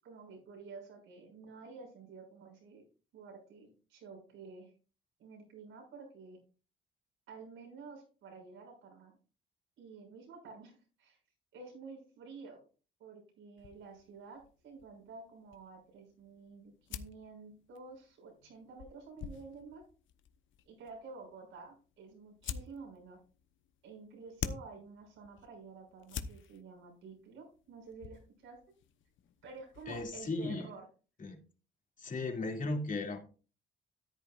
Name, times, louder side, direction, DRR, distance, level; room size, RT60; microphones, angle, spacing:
voice 1, 0.0-2.9 3.1-4.7 5.2-6.4 7.3-9.2 9.8-11.2 11.5-12.6 13.0-19.8 20.6-23.2 23.8-28.6 29.4-30.8, right 4 dB, 85° right, 1 dB, 6.5 m, -51 dB
sound 1, 13.6-30.4, left 8 dB, 75° left, 0.9 m, -49 dB
voice 2, 29.9-30.7 31.2-31.4 32.0-33.2, left 2 dB, 40° left, 2 dB, 2.6 m, -36 dB
13.0 x 10.5 x 2.5 m, 0.36 s
cardioid pair, 90°, 20 cm